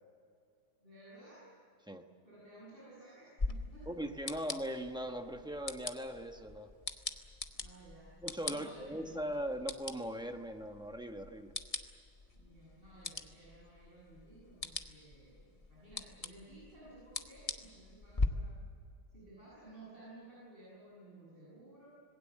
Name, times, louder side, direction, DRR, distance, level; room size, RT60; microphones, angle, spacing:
voice 1, 0.8-1.5 2.2-3.9 7.5-8.2 8.4-9.3 12.3-18.6 19.1-21.9, right 2 dB, 25° right, -8 dB, 7.7 m, -56 dB
sound 1, 3.4-18.3, left 3 dB, 30° left, 0.7 m, -42 dB
voice 2, 3.9-6.7 8.2-11.6, equal, 5° right, 4 dB, 0.3 m, -40 dB
26.5 x 20.0 x 7.6 m, 2.4 s
omnidirectional pair, 2.4 m